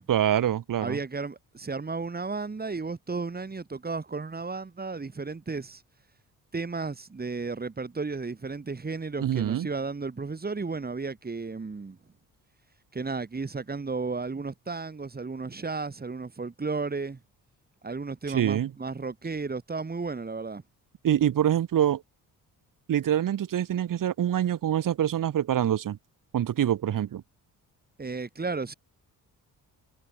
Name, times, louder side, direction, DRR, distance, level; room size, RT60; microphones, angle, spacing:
voice 1, 0.1-1.0 9.2-9.7 18.3-18.7 21.0-22.0 22.9-26.0 26.3-27.2, right 10 dB, 60° right, 2.3 m, -25 dB
voice 2, 0.8-5.8 6.5-12.0 12.9-17.2 17.8-20.6 28.0-28.7, right 4 dB, 25° right, 7.3 m, -33 dB
cardioid pair, 110°, 36 cm